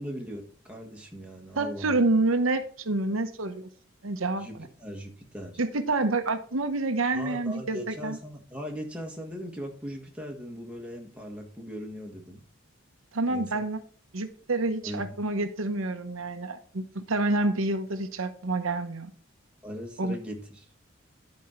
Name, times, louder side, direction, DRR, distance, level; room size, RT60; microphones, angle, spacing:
voice 1, 0.0-2.0 4.4-5.6 7.1-12.4 13.3-13.6 14.8-15.1 19.6-20.7, equal, 5° right, 1.6 m, -39 dB
voice 2, 1.6-3.7 4.0-4.5 5.6-8.2 13.1-13.8 14.1-19.1 20.0-20.2, right 2 dB, 85° right, 1.0 m, -28 dB
10.5 x 5.3 x 4.5 m
head